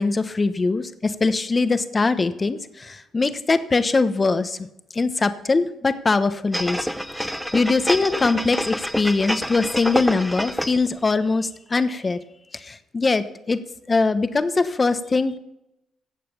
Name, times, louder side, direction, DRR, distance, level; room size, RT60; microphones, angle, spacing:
voice 1, 0.0-4.6 4.9-12.2 12.5-13.6 13.9-15.4, left 3 dB, 30° left, 11 dB, 1.1 m, -22 dB
sound 1, 6.5-10.9 11.3-11.4, equal, ahead, 0.7 m, -27 dB
17.0 x 6.8 x 6.9 m, 0.87 s
cardioid pair, 90°, 0 cm